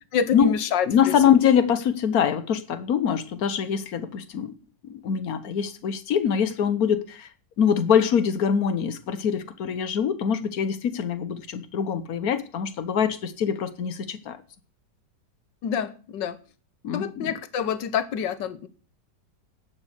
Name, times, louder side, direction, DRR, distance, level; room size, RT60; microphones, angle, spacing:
voice 1, 0.1-0.9 15.6-16.4 16.9-18.7, left 7 dB, 85° left, 1.7 m, -26 dB
voice 2, 0.9-4.5 4.8-7.3 7.6-14.4 16.8-17.3, left 8 dB, 60° left, 1.4 m, -24 dB
10.0 x 7.4 x 8.2 m
omnidirectional pair, 1.9 m